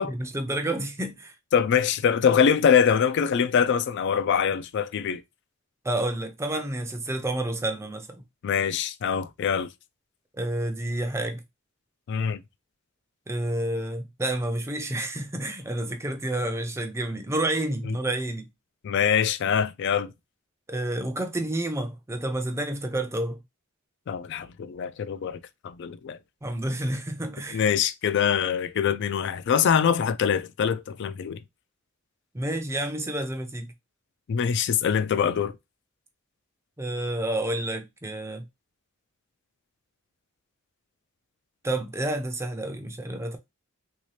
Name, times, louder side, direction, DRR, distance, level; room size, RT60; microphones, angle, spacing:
voice 1, 0.0-1.3 5.8-8.2 10.3-11.4 13.3-18.5 20.7-23.4 26.4-27.6 32.3-33.7 36.8-38.4 41.6-43.4, right 1 dB, 10° right, 0.4 m, -29 dB
voice 2, 1.5-5.2 8.4-9.7 12.1-12.4 18.8-20.1 24.1-26.2 27.5-31.4 34.3-35.5, left 7 dB, 55° left, 0.3 m, -24 dB
3.2 x 2.7 x 3.1 m
head